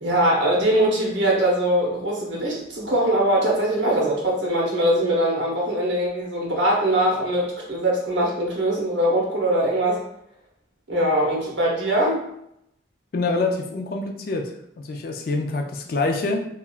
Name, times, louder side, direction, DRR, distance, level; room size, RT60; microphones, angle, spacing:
voice 1, 0.0-10.0 10.9-12.2, right 1 dB, 75° right, -3 dB, 0.8 m, -22 dB
voice 2, 13.1-16.4, left 3 dB, 50° left, 3 dB, 0.3 m, -26 dB
2.9 x 2.3 x 2.4 m, 0.76 s
head